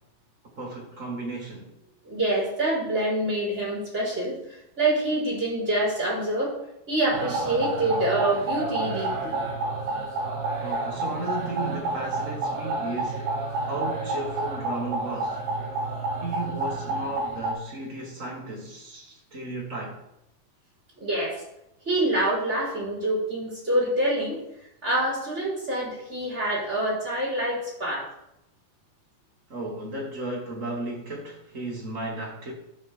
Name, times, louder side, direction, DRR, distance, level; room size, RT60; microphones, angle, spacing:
voice 1, 0.6-1.7 10.6-15.4 16.2-20.0 29.5-32.5, right 2 dB, 35° right, 1.3 m, -34 dB
voice 2, 2.0-6.5 6.9-9.4 21.0-21.4 21.8-24.4 24.8-28.1, right 1 dB, 15° right, 4.2 m, -26 dB
sound 1, 7.1-17.5, right 2 dB, 85° right, 3.7 m, -30 dB
13.5 x 6.6 x 3.6 m
omnidirectional pair, 4.5 m